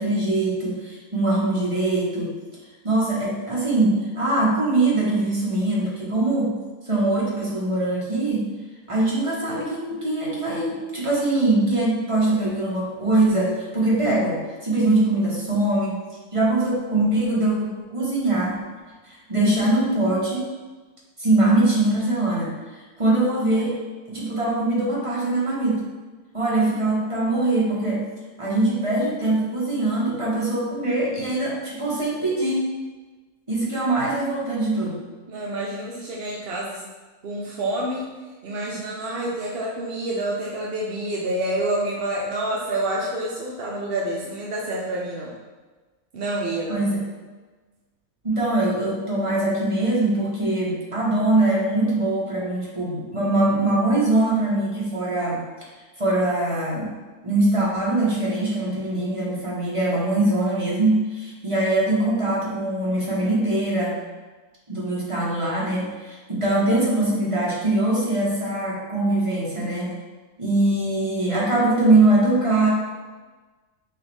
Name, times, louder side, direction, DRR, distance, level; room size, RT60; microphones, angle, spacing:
voice 1, 0.0-2.3 2.8-6.6 6.9-8.5 8.9-16.0 16.3-18.6 19.3-20.5 21.2-22.5 23.0-23.7 24.1-25.8 26.3-28.0 28.4-32.6 33.5-35.0 46.7-47.0 48.2-55.4 56.0-56.9 57.2-64.0 64.7-70.0 70.4-72.7, right 2 dB, 25° right, -6 dB, 0.9 m, -22 dB
voice 2, 35.3-36.8 37.2-38.1 38.4-45.4 46.1-46.9, right 1 dB, 65° right, -3 dB, 0.6 m, -28 dB
5.8 x 2.4 x 3.3 m, 1.3 s
omnidirectional pair, 1.6 m